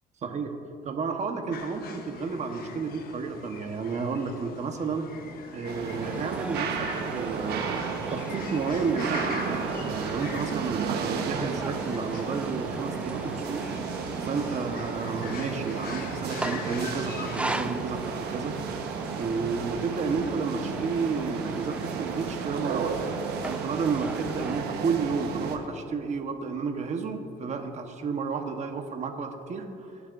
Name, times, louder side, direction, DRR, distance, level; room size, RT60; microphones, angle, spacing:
voice 1, 0.2-5.1 5.5-7.6 8.1-13.7 14.2-18.6 19.2-23.0 23.4-29.7, right 5 dB, 45° right, 5 dB, 1.1 m, -31 dB
sound 1, 1.5-17.8, left 6 dB, 60° left, 1.0 m, -43 dB
sound 2, 5.6-25.6, right 6 dB, 75° right, 1.1 m, -33 dB
sound 3, 6.0-24.6, right 1 dB, 5° right, 0.4 m, -41 dB
22.0 x 8.5 x 2.6 m, 2.9 s
cardioid pair, 110°, 17 cm